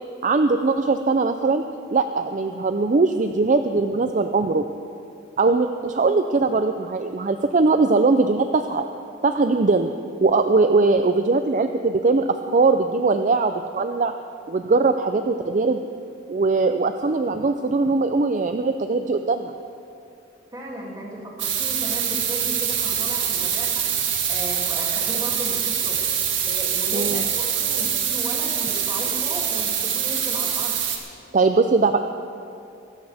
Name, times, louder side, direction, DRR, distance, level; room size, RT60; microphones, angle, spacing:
voice 1, 0.2-1.6 1.9-4.6 5.4-8.8 9.2-9.9 10.2-14.1 14.5-15.8 16.3-19.5 26.9-27.2 31.3-32.0, right 3 dB, 40° right, 7 dB, 0.5 m, -20 dB
voice 2, 20.5-23.8 24.3-26.0 26.5-30.8, equal, 20° right, -3 dB, 2.6 m, -35 dB
sound 1, 21.4-31.0, right 8 dB, 80° right, 1.9 m, -24 dB
23.0 x 13.0 x 3.5 m, 2.5 s
head